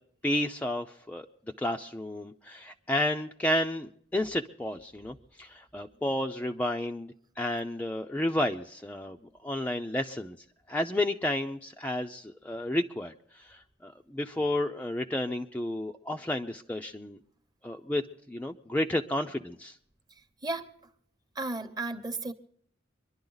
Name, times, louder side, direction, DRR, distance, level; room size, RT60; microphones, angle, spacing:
voice 1, 0.2-1.3 1.6-9.2 9.4-10.4 10.7-17.2 17.6-18.0 18.3-19.8, left 1 dB, 10° left, 0.5 m, -31 dB
voice 2, 21.4-22.3, right 2 dB, 20° right, 1.0 m, -33 dB
25.0 x 11.5 x 3.9 m
head